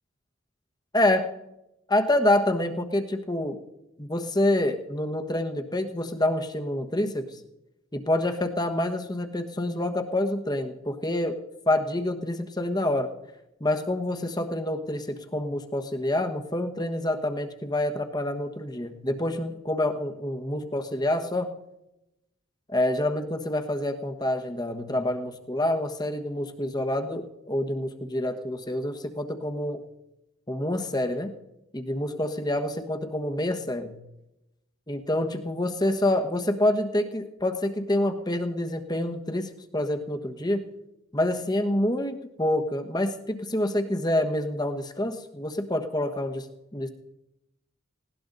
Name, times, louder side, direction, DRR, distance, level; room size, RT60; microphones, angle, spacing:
voice 1, 0.9-1.3 1.9-3.6 4.0-7.4 7.9-11.4 11.7-13.1 13.6-21.5 22.7-29.8 30.5-31.3 31.7-34.0 34.9-40.6 41.1-46.5 46.7-46.9, left 1 dB, 20° left, 6 dB, 1.2 m, -27 dB
19.5 x 18.0 x 4.0 m, 0.90 s
head